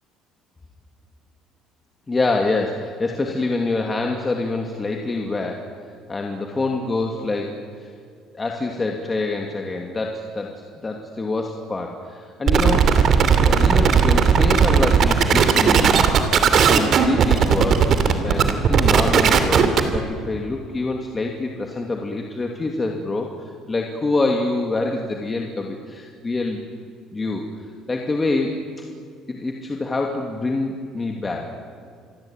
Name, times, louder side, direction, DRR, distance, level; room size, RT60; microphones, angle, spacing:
voice 1, 2.1-5.7 6.1-7.9 8.3-13.0 13.4-16.1 16.5-23.3 23.7-26.6 27.1-27.4 27.9-28.5 29.3-31.5, left 3 dB, 20° left, 2 dB, 2.7 m, -26 dB
sound 1, 12.5-20.0, right 6 dB, 50° right, 2.9 m, -16 dB
27.5 x 22.0 x 9.1 m, 2.2 s
cardioid pair, 120°, 0 cm